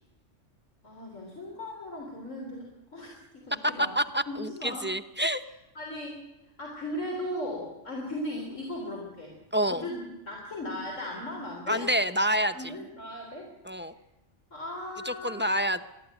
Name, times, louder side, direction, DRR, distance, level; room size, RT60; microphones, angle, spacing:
voice 1, 0.8-3.9 4.3-4.9 5.8-6.2 6.6-9.4 9.7-11.8 12.5-13.5 13.9-14.0 14.5-15.6, left 1 dB, 85° left, -1 dB, 4.0 m, -37 dB
voice 2, 3.5-5.4 9.5-9.8 11.7-12.7 13.6-13.9 15.1-15.8, equal, 10° right, 10 dB, 0.6 m, -28 dB
21.0 x 14.0 x 9.1 m, 0.96 s
omnidirectional pair, 1.3 m